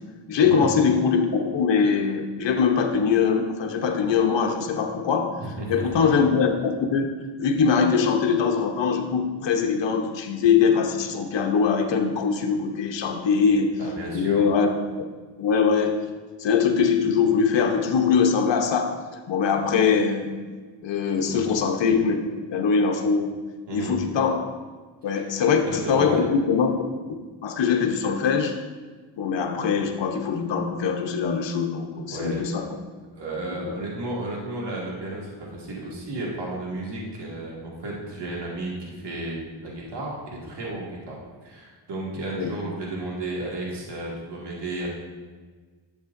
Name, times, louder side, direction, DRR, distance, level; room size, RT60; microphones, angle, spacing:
voice 1, 0.3-5.4 5.7-7.1 7.4-13.7 14.1-14.7 15.0-15.1 15.4-16.0 16.4-18.9 19.3-20.3 20.8-22.2 22.5-23.3 23.7-24.4 25.0-26.7 27.4-28.6 29.2-32.7 33.5-33.7 42.3-42.5, left 6 dB, 65° left, 2 dB, 1.0 m, -22 dB
voice 2, 5.4-6.0 13.8-14.5 21.2-21.4 23.7-23.9 25.1-25.3 25.6-26.2 32.1-32.4 33.1-44.9, right 2 dB, 60° right, -4 dB, 2.1 m, -33 dB
11.5 x 7.3 x 2.6 m, 1.4 s
cardioid pair, 100°, 47 cm